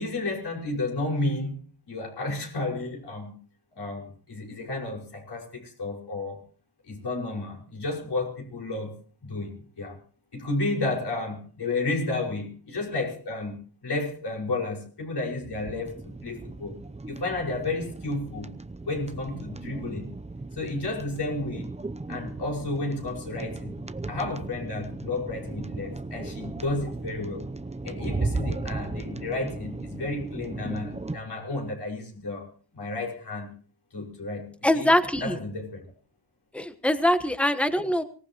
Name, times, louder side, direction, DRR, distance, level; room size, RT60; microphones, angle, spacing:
voice 1, 0.0-1.6 1.9-3.3 3.7-6.4 6.9-8.9 9.2-10.0 10.3-16.8 17.1-18.5 18.8-20.1 20.6-21.7 22.1-23.8 24.1-27.4 27.8-32.5 32.7-33.5 33.9-34.5 34.8-34.9 35.2-35.8, left 2 dB, 80° left, -1 dB, 5.7 m, -32 dB
sound 1, 15.6-31.2, right 3 dB, 15° right, 0.7 m, -36 dB
voice 2, 34.6-35.4 36.5-38.0, left 1 dB, 5° left, 9 dB, 1.3 m, -23 dB
24.0 x 18.0 x 3.1 m, 0.41 s
wide cardioid pair, 120°, 39 cm